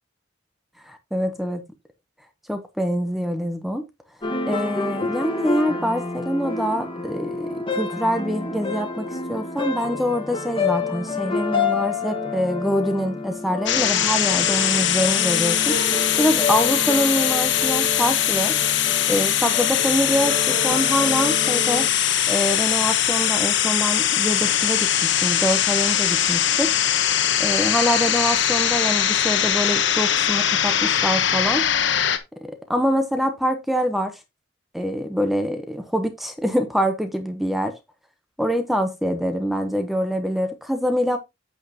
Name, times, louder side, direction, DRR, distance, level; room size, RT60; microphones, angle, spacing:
voice 1, 0.8-1.6 2.5-3.8 4.5-15.8 16.2-18.6 19.1-21.9 22.3-26.7 27.4-31.7 32.4-34.2 34.7-37.7 38.4-41.2, equal, ahead, 0.9 m, -25 dB
sound 1, 4.2-21.9, left 4 dB, 25° left, 1.5 m, -29 dB
sound 2, 13.7-32.2, left 10 dB, 65° left, 1.1 m, -21 dB
8.7 x 8.3 x 2.8 m
head